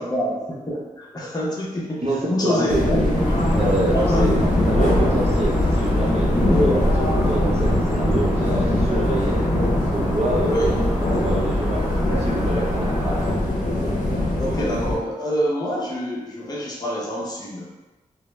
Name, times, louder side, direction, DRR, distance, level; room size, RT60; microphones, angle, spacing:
voice 1, 0.0-2.0 2.3-3.4 3.9-4.4 6.4-6.8 10.4-10.7 13.8-13.9 14.4-17.7, equal, 30° left, -5 dB, 0.7 m, -26 dB
voice 2, 2.0-3.2 3.6-9.4 9.9-13.3, right 1 dB, 50° right, -4 dB, 0.8 m, -26 dB
sound 1, 2.7-15.0, left 1 dB, 65° left, 0.6 m, -22 dB
sound 2, 3.1-13.3, equal, 15° right, 0.8 m, -30 dB
2.1 x 2.0 x 3.1 m, 1.1 s
cardioid pair, 40°, 14 cm